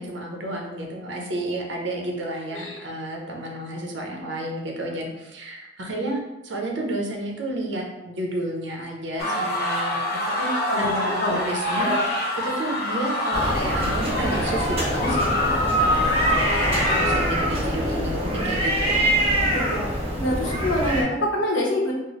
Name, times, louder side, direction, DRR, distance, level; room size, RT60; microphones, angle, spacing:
voice 1, 0.0-11.9 12.4-19.1, right 1 dB, 70° right, 0 dB, 0.8 m, -31 dB
sound 1, 9.2-17.2, left 1 dB, 55° left, 0.8 m, -25 dB
voice 2, 10.7-11.4 11.8-12.0 19.4-19.8 20.2-21.9, left 1 dB, 90° left, -1 dB, 0.8 m, -26 dB
sound 2, 13.3-21.0, equal, 35° right, 0.9 m, -24 dB
4.4 x 2.1 x 3.1 m, 1.0 s
head